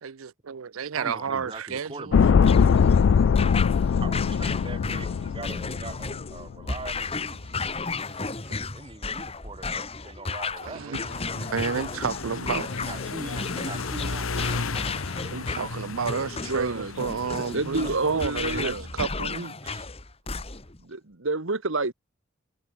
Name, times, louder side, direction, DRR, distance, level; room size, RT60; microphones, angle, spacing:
voice 1, 0.0-2.5 7.9-8.3 10.7-12.7 15.3-19.8, right 6 dB, 90° right, 0.6 m, -32 dB
voice 2, 1.0-2.3 4.0-7.6 8.7-11.0 12.8-14.9, right 2 dB, 25° right, 1.8 m, -41 dB
sound 1, 2.1-6.4 6.7-6.8, left 6 dB, 65° left, 0.3 m, -21 dB
sound 2, 2.4-20.8, left 4 dB, 30° left, 1.8 m, -34 dB
sound 3, 11.1-18.6, left 4 dB, 85° left, 1.1 m, -35 dB
voice 3, 16.5-16.9 17.4-18.9 20.8-21.9, right 3 dB, 70° right, 1.6 m, -29 dB
head